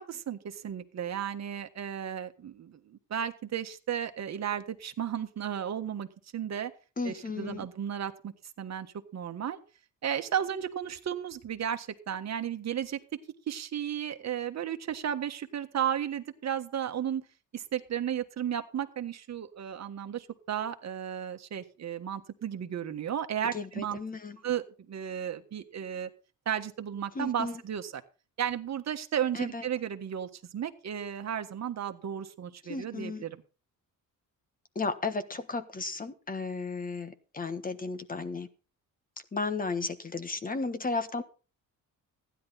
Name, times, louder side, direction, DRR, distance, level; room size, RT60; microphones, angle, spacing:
voice 1, 0.0-6.7 7.0-9.6 10.0-13.2 13.5-17.2 17.5-24.0 24.4-26.1 26.4-28.0 28.4-33.4, right 9 dB, 50° right, 7 dB, 1.5 m, -34 dB
voice 2, 7.0-7.7 23.5-24.4 27.1-27.6 29.3-29.6 32.7-33.2 34.7-38.5 39.3-41.2, left 3 dB, 25° left, 11 dB, 1.4 m, -34 dB
15.5 x 10.5 x 4.2 m, 0.34 s
cardioid pair, 130°, 34 cm